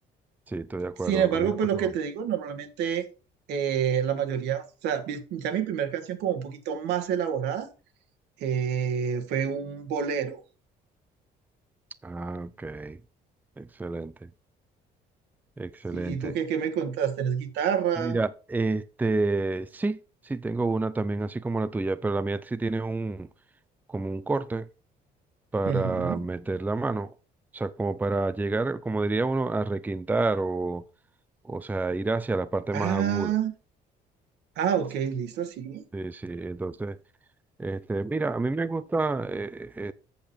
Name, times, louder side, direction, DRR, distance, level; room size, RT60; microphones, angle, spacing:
voice 1, 0.5-1.5 12.0-13.0 13.6-14.3 15.6-16.3 18.0-20.0 20.2-23.3 23.9-24.7 25.5-27.1 27.5-30.8 31.4-33.3 35.9-37.0 37.6-39.9, right 3 dB, 10° right, 0.5 m, -29 dB
voice 2, 1.0-3.1 3.5-7.7 8.4-10.4 15.9-18.2 25.6-26.3 32.7-33.5 34.6-35.8, right 8 dB, 85° right, 1.7 m, -28 dB
7.8 x 7.0 x 4.4 m
cardioid pair, 110°, 17 cm